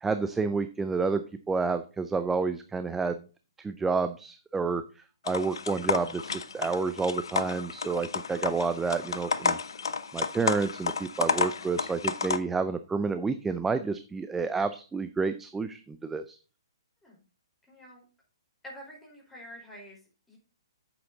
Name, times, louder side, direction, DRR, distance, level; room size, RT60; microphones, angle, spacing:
voice 1, 0.0-3.2 3.6-4.8 5.2-9.6 10.1-16.4, right 4 dB, 10° right, 10 dB, 0.5 m, -29 dB
sound 1, 5.3-12.4, left 5 dB, 65° left, 0.9 m, -31 dB
voice 2, 17.6-18.1 18.6-20.4, equal, 5° left, -3 dB, 4.4 m, -48 dB
8.5 x 7.0 x 3.9 m, 0.34 s
figure-of-eight pair, 125°, 3 cm